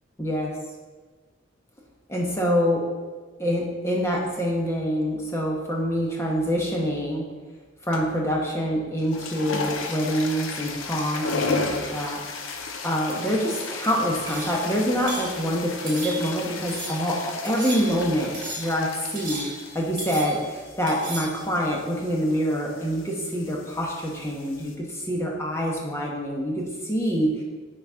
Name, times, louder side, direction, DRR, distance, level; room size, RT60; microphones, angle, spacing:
voice 1, 0.2-0.5 2.1-2.8 3.4-7.2 7.9-12.2 12.8-19.5 19.7-27.3, equal, 15° left, -2 dB, 1.1 m, -26 dB
sound 1, 7.9-8.3 8.9-24.7, left 4 dB, 85° left, 0.7 m, -35 dB
sound 2, 14.3-14.6 15.1-15.3 15.9-16.4 16.7-17.1 17.4-18.0 18.3-18.8 19.1-19.7 20.0-20.5 20.9-21.4, right 2 dB, 40° right, 2.0 m, -36 dB
9.3 x 4.2 x 3.6 m, 1.4 s
head